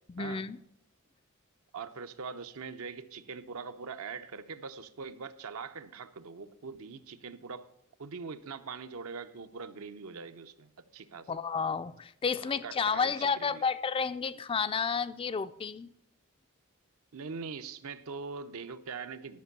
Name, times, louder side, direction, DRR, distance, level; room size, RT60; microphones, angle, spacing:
voice 1, 0.1-0.6 11.3-15.9, left 5 dB, 25° left, 0.3 m, -31 dB
voice 2, 1.7-7.7 8.0-11.3 12.4-13.6 17.1-19.4, right 5 dB, 70° right, 0.7 m, -42 dB
11.5 x 5.3 x 8.1 m
head